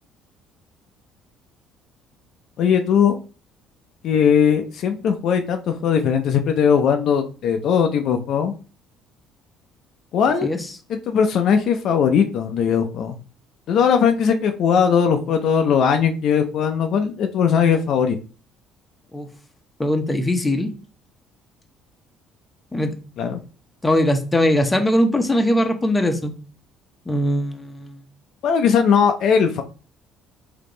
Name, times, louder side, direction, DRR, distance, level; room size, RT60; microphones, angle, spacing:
voice 1, 2.6-3.2 4.0-8.5 10.1-10.5 10.9-13.2 13.7-18.2 23.2-23.4 28.4-29.6, left 7 dB, 65° left, 5 dB, 0.5 m, -19 dB
voice 2, 19.8-20.7 22.7-22.9 23.8-26.3 27.1-28.0, left 1 dB, 15° left, 5 dB, 0.7 m, -20 dB
3.5 x 2.8 x 3.8 m, 0.37 s
cardioid pair, 105°, 0 cm